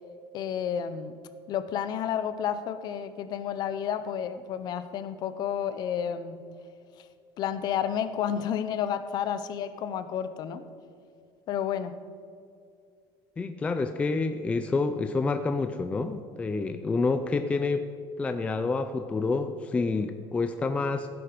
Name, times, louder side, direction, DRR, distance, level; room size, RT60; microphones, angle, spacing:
voice 1, 0.3-1.1 1.5-6.4 7.4-10.6 11.5-11.9, left 9 dB, 40° left, 12 dB, 0.7 m, -31 dB
voice 2, 13.4-17.8 18.2-21.1, left 3 dB, 10° left, 8 dB, 0.4 m, -28 dB
16.5 x 9.9 x 5.1 m, 2.4 s
cardioid pair, 170°, 10 cm